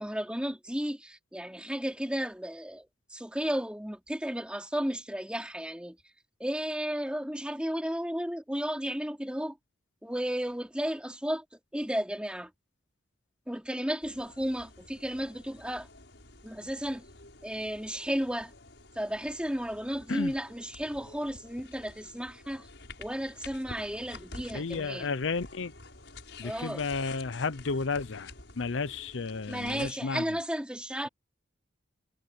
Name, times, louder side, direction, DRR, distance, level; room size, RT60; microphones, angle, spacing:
voice 1, 0.0-6.0 6.4-9.6 10.0-12.5 13.5-15.9 16.4-17.1 17.4-18.5 18.9-22.7 23.0-25.1 26.4-26.8 29.5-31.1, equal, 5° right, 3.1 m, -33 dB
sound 1, 14.0-29.9, left 3 dB, 70° left, 6.7 m, -49 dB
voice 2, 24.5-25.7 26.4-30.2, left 4 dB, 90° left, 0.7 m, -32 dB
head